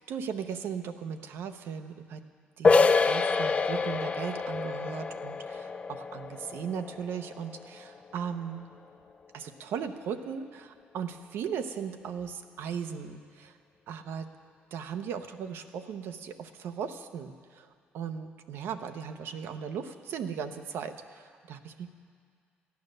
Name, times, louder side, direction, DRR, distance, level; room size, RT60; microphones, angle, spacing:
voice 1, 0.0-2.2 2.6-8.7 9.3-13.5 13.9-14.3 14.7-17.7 17.9-21.9, right 7 dB, 70° right, 7 dB, 0.8 m, -37 dB
sound 1, 2.6-8.1, left 4 dB, 30° left, 0.5 m, -27 dB
13.5 x 9.5 x 6.5 m, 2.2 s
cardioid pair, 95°, 4 cm